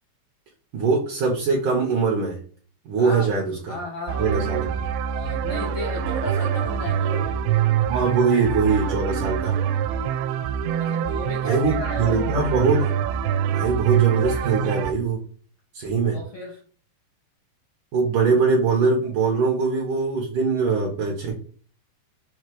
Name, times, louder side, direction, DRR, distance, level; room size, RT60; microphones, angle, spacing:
voice 1, 0.7-2.4 2.9-3.8 4.2-4.8 7.9-9.6 11.4-12.9 13.5-15.2 15.7-16.2 17.9-21.4, right 4 dB, 65° right, 2.2 m, -22 dB
voice 2, 3.0-3.3 3.7-4.4 5.1-7.4 10.7-12.3 16.1-16.6, left 2 dB, 80° left, 1.4 m, -34 dB
sound 1, 4.1-14.9, right 9 dB, 85° right, 2.8 m, -25 dB
6.8 x 3.2 x 4.7 m
omnidirectional pair, 4.8 m